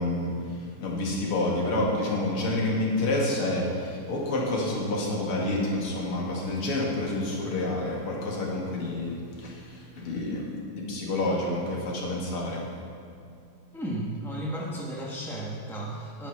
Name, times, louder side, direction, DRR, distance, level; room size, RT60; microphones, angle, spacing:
voice 1, 0.0-12.7, left 2 dB, 80° left, -2 dB, 2.9 m, -29 dB
voice 2, 13.7-16.3, right 1 dB, ahead, -4 dB, 0.6 m, -34 dB
11.0 x 9.0 x 5.8 m, 2.5 s
omnidirectional pair, 2.4 m